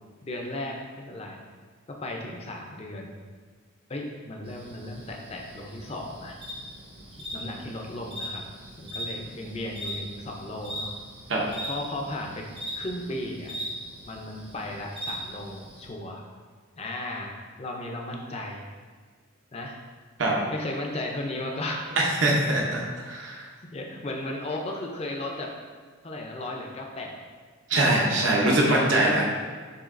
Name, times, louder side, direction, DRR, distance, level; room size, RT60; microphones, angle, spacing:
voice 1, 0.2-1.4 2.0-3.2 3.9-6.4 7.2-8.4 8.7-10.9 11.7-12.4 12.8-13.5 14.0-16.2 16.8-18.7 19.5-19.8 20.5-22.1 23.7-25.5 26.0-27.2 27.8-29.3, left 1 dB, 30° left, 1 dB, 0.5 m, -35 dB
sound 1, 4.4-15.9, equal, 25° right, 0.7 m, -40 dB
voice 2, 22.2-23.4 27.7-29.2, right 1 dB, 65° right, -2 dB, 0.8 m, -23 dB
6.9 x 2.8 x 2.5 m, 1.5 s
head